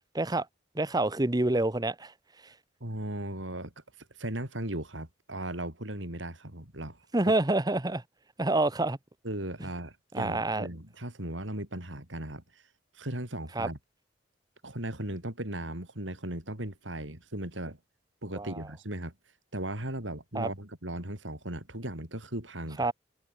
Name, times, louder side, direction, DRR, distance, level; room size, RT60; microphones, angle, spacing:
voice 1, 0.1-0.5 0.7-2.1 7.1-8.0 8.4-9.0 10.1-10.7 13.5-13.7 18.3-18.6 20.3-20.5 22.8-22.9, right 2 dB, 20° right, 1.0 m, -27 dB
voice 2, 2.8-3.7 4.0-7.0 7.3-7.4 9.2-12.6 12.9-13.8 14.6-17.8 18.2-19.1 19.5-22.9, right 1 dB, 85° right, 6.3 m, -37 dB
head